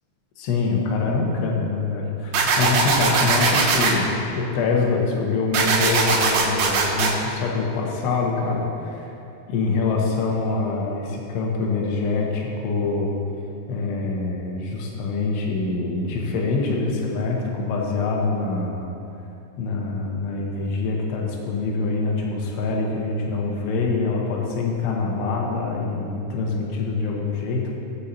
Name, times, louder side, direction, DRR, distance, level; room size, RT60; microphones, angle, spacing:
voice 1, 0.4-9.2 9.5-13.1 13.7-18.9 19.6-27.7, left 3 dB, 75° left, -1 dB, 3.0 m, -25 dB
sound 1, 2.3-3.9 5.5-7.1, right 4 dB, 70° right, 2.3 m, -20 dB
16.5 x 8.1 x 2.9 m, 2.8 s
omnidirectional pair, 5.4 m